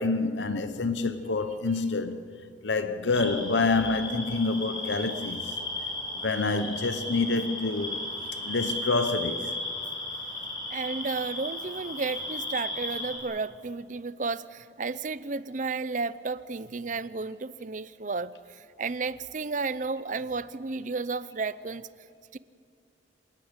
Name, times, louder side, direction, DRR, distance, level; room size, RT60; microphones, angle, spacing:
voice 1, 0.0-2.2 2.6-5.5 6.2-8.0 8.4-9.5, left 3 dB, 80° left, 0.9 m, -27 dB
sound 1, 3.1-13.2, left 2 dB, 25° left, 5.5 m, -35 dB
voice 2, 10.7-21.9 22.3-22.4, right 4 dB, 45° right, 0.6 m, -33 dB
27.5 x 18.5 x 8.2 m
head